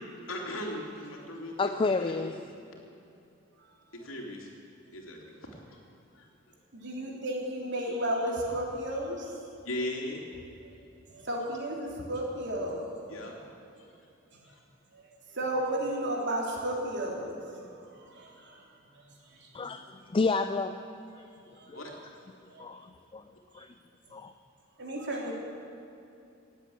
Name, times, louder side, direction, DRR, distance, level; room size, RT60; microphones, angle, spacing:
voice 1, 0.3-1.7 2.0-2.3 3.9-4.5 4.9-5.2 5.7-5.8 6.1-6.3 9.6-10.2 13.1-13.4 14.5-14.6 21.7-21.9, left 1 dB, 85° left, 0 dB, 3.1 m, -37 dB
voice 2, 1.6-2.4 19.5-19.8 20.1-20.9 21.1-21.2 21.7-21.8 22.6-23.2 23.5-23.7 24.1-24.3, left 3 dB, 25° left, 9 dB, 0.4 m, -30 dB
voice 3, 3.5-4.0 6.7-9.4 10.6-10.7 11.1-12.8 14.9-19.6 21.2-21.3 21.5-21.8 22.5-22.6 23.5-23.7 24.8-25.3, right 1 dB, 60° right, -1 dB, 3.2 m, -34 dB
18.5 x 8.3 x 8.7 m, 2.6 s
head